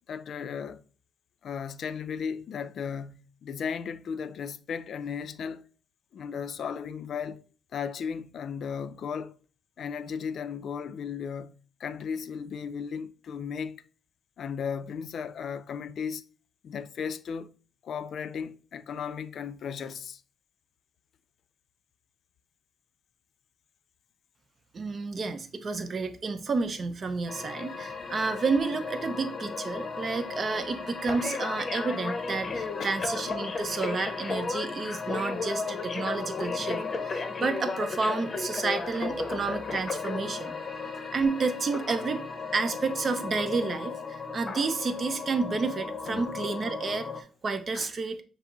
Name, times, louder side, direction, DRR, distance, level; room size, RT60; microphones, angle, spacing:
voice 1, 0.1-0.8 1.4-5.7 6.1-7.4 7.7-9.4 9.8-13.8 14.4-16.2 16.6-17.5 17.8-20.2 32.8-32.9 46.1-46.2 47.7-47.9, left 6 dB, 60° left, 0.4 m, -35 dB
voice 2, 24.7-40.5 41.1-42.2 42.5-48.2, right 4 dB, 40° right, 0.6 m, -30 dB
sound 1, 27.3-47.2, left 4 dB, 40° left, 0.7 m, -35 dB
5.7 x 2.0 x 3.8 m
cardioid pair, 90°, 0 cm